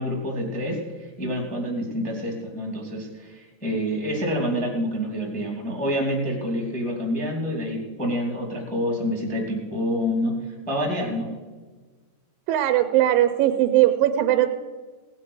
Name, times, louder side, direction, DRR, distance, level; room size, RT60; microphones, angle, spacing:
voice 1, 0.0-11.3, equal, 5° left, 1 dB, 2.0 m, -27 dB
voice 2, 12.5-14.5, right 13 dB, 85° right, 8 dB, 2.3 m, -19 dB
17.5 x 8.7 x 6.4 m, 1.4 s
omnidirectional pair, 4.1 m